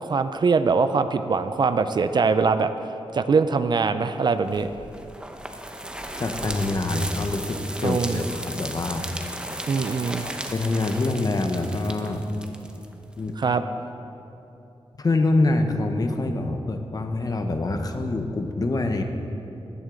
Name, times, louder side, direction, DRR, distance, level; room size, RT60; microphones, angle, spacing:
voice 1, 0.0-2.7 3.1-4.7 7.8-8.2 9.7-10.3 13.4-13.6, right 4 dB, 45° right, 10 dB, 0.4 m, -22 dB
sound 1, 4.5-13.3, right 1 dB, 10° right, 0.7 m, -36 dB
voice 2, 6.2-9.1 10.0-12.2 13.2-13.3 15.0-19.0, left 2 dB, 40° left, 5 dB, 0.9 m, -25 dB
15.5 x 11.0 x 3.8 m, 2.9 s
wide cardioid pair, 140°, 10 cm